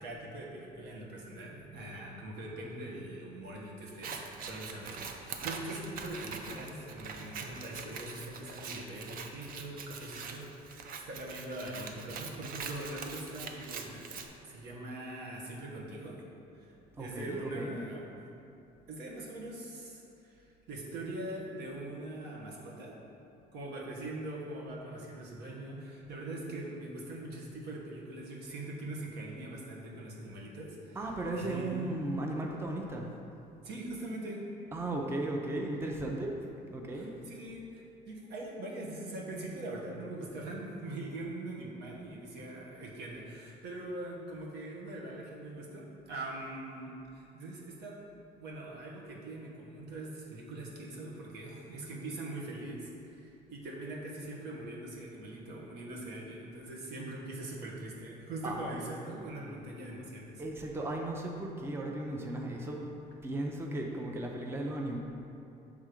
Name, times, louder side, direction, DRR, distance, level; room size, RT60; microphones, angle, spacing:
voice 1, 0.0-14.1 14.5-16.2 16.5-16.7 17.0-18.1 18.9-22.9 23.5-31.0 31.3-31.8 33.6-34.4 36.9-48.0 48.4-60.4, right 1 dB, 75° right, -3 dB, 1.2 m, -42 dB
Scissors, 3.9-14.3, right 5 dB, 55° right, 0.6 m, -43 dB
voice 2, 17.0-17.8 31.0-33.1 34.7-36.4 36.7-37.1 58.4-58.8 59.4-59.5 60.4-62.9 63.2-65.0, right 1 dB, 15° right, 0 dB, 0.6 m, -36 dB
6.2 x 3.7 x 5.0 m, 2.7 s
cardioid pair, 110°, 17 cm